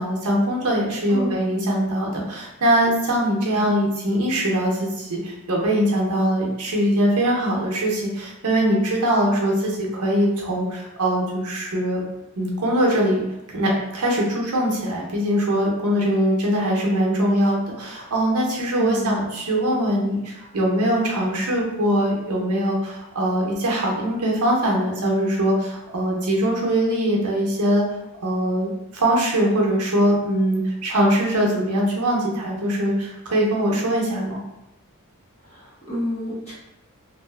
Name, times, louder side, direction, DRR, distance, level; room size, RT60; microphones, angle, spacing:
voice 1, 0.0-12.0 12.4-13.2 13.5-27.9 28.2-34.4, right 1 dB, 90° right, -2 dB, 0.7 m, -22 dB
voice 2, 18.8-19.2 35.4-36.5, equal, 30° left, -9 dB, 0.9 m, -29 dB
2.6 x 2.4 x 2.2 m, 0.92 s
head